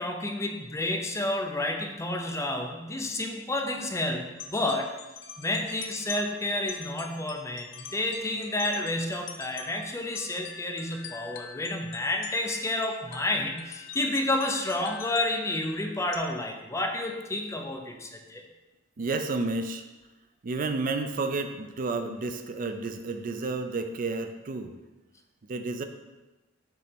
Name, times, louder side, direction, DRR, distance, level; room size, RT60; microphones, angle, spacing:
voice 1, 0.0-4.9 5.4-18.4, left 1 dB, 15° left, 3 dB, 0.6 m, -30 dB
sound 1, 4.4-16.2, left 7 dB, 70° left, 0.6 m, -44 dB
voice 2, 19.0-19.8 20.4-24.8 25.5-25.8, right 3 dB, 45° right, 7 dB, 0.4 m, -31 dB
6.8 x 3.2 x 5.8 m, 1.1 s
head